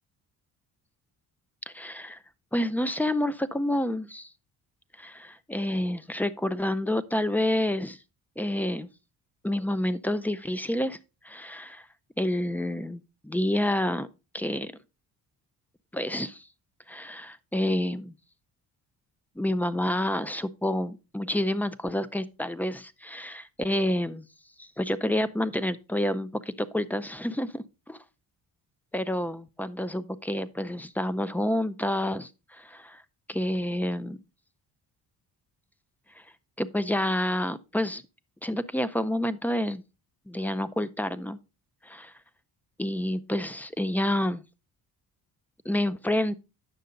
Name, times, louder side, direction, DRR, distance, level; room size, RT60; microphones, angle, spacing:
voice 1, 1.7-2.2 2.5-4.3 5.0-8.0 8.4-8.9 9.4-11.0 11.2-11.9 12.2-14.1 14.3-14.7 15.9-16.5 16.9-18.1 19.4-24.2 24.6-28.0 28.9-33.0 33.3-34.2 36.6-38.0 38.4-39.8 40.3-41.4 41.8-42.1 42.8-44.4 45.7-46.3, left 1 dB, 5° left, 0.4 m, -29 dB
9.2 x 6.6 x 3.8 m
cardioid pair, 130°, 38 cm